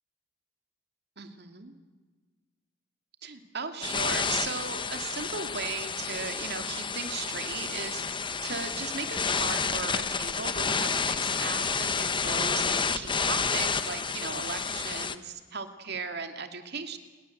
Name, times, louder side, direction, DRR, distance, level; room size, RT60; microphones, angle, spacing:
voice 1, 1.2-1.7 3.2-8.1 8.4-17.0, right 5 dB, 60° right, 7 dB, 2.5 m, -37 dB
sound 1, 3.8-15.1, left 5 dB, 25° left, 1.1 m, -30 dB
28.5 x 22.0 x 8.0 m, 1.4 s
head